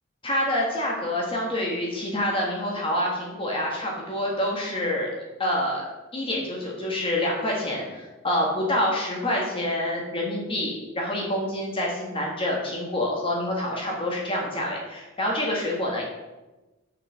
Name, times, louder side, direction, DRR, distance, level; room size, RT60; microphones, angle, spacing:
voice 1, 0.2-5.1 5.4-5.8 6.1-16.0, left 1 dB, 25° left, -2 dB, 1.7 m, -27 dB
6.7 x 5.9 x 6.2 m, 1.1 s
head